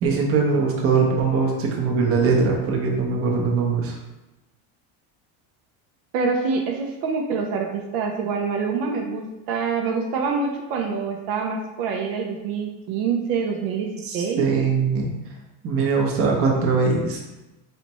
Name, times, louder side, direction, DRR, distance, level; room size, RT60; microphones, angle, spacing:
voice 1, 0.0-4.0 14.0-15.1 15.6-17.2, right 4 dB, 35° right, -1 dB, 0.8 m, -21 dB
voice 2, 6.1-14.5, right 5 dB, 65° right, 1 dB, 0.7 m, -26 dB
4.1 x 3.3 x 3.0 m, 1.0 s
cardioid pair, 155°, 40 cm